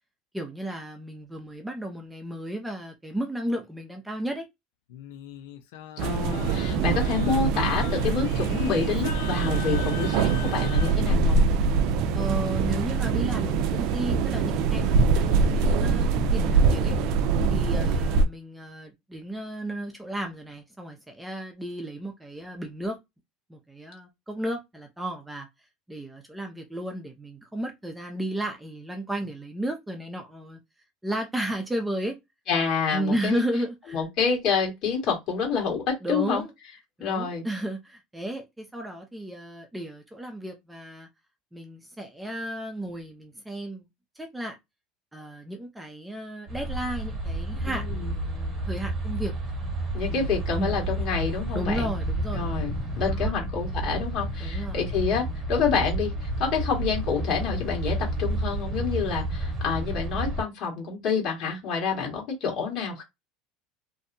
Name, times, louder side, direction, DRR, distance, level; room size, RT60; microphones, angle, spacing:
voice 1, 0.3-4.5 12.1-17.0 17.5-23.0 23.5-25.5 25.9-30.6 31.0-32.2 32.9-34.0 36.0-36.5 37.0-41.1 41.5-43.9 44.2-44.5 45.1-49.3 50.1-50.3 50.6-50.8 51.5-52.5 53.1-53.3 54.4-54.8, right 1 dB, 5° right, 0.5 m, -33 dB
Singing, 4.9-11.0, left 10 dB, 80° left, 0.4 m, -39 dB
voice 2, 6.0-11.4 32.5-33.4 33.9-36.4 37.0-37.4 47.6-48.1 49.9-51.9 52.3-63.0, left 6 dB, 50° left, 1.5 m, -28 dB
sound 1, 6.0-18.3, right 4 dB, 65° right, 0.4 m, -23 dB
sound 2, 46.5-60.4, right 1 dB, 30° right, 1.1 m, -30 dB
2.7 x 2.1 x 2.6 m
supercardioid pair, 115°, 0 cm